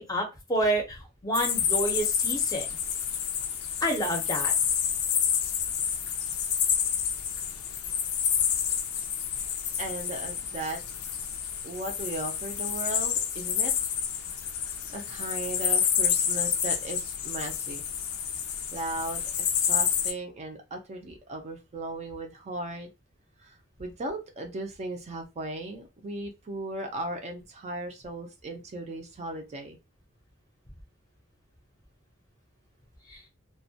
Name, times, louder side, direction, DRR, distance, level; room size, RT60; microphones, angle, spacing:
voice 1, 0.0-2.6 3.8-4.5 33.1-33.2, right 1 dB, 20° left, 2 dB, 0.6 m, -29 dB
sound 1, 1.3-20.1, left 8 dB, 90° left, 0.4 m, -29 dB
voice 2, 9.8-10.8 11.6-13.7 14.9-17.9 18.7-22.9 23.4-29.8, right 1 dB, 30° right, 3 dB, 0.4 m, -37 dB
2.2 x 2.1 x 2.7 m, 0.26 s
head